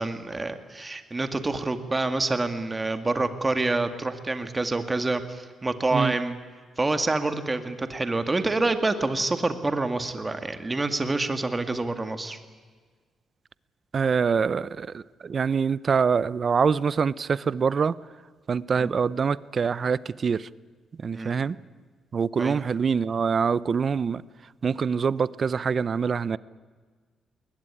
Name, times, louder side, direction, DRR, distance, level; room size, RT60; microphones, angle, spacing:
voice 1, 0.0-6.4 6.8-12.4 18.8-18.9 21.1-21.3 22.4-22.6, right 2 dB, 20° right, 9 dB, 2.1 m, -27 dB
voice 2, 13.9-18.0 18.5-20.5 21.0-21.6 22.1-24.2 24.6-26.4, right 6 dB, 45° right, 20 dB, 0.6 m, -25 dB
20.5 x 20.5 x 10.0 m, 1.5 s
cardioid pair, 100°, 0 cm